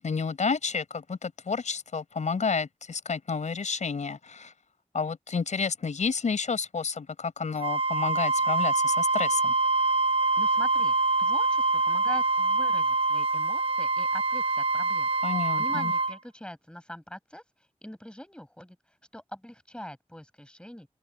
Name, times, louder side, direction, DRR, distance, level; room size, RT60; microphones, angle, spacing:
voice 1, 0.0-4.5 4.9-9.5 15.2-15.9, left 5 dB, 85° left, 4.9 m, -30 dB
Wind instrument woodwind instrument, 7.6-16.2, right 3 dB, 50° right, 1.0 m, -25 dB
voice 2, 10.4-15.1 15.5-17.4 17.8-18.8 19.1-20.9, equal, 10° left, 7.2 m, -43 dB
cardioid pair, 55°, 12 cm